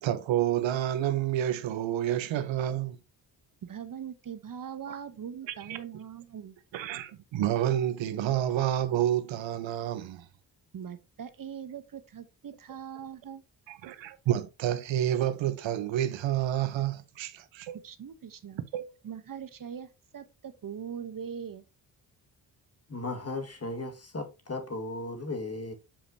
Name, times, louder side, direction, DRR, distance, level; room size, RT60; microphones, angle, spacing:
voice 1, 0.0-3.0 4.9-5.0 5.5-5.8 6.7-10.3 13.7-17.8 18.7-18.9, right 11 dB, 80° right, 0.8 m, -29 dB
voice 2, 3.6-6.6 10.7-13.4 17.7-18.6 19.0-21.6, right 8 dB, 45° right, 0.9 m, -41 dB
voice 3, 22.9-25.7, left 2 dB, 35° left, 1.8 m, -36 dB
7.2 x 5.0 x 2.7 m
cardioid pair, 60°, 45 cm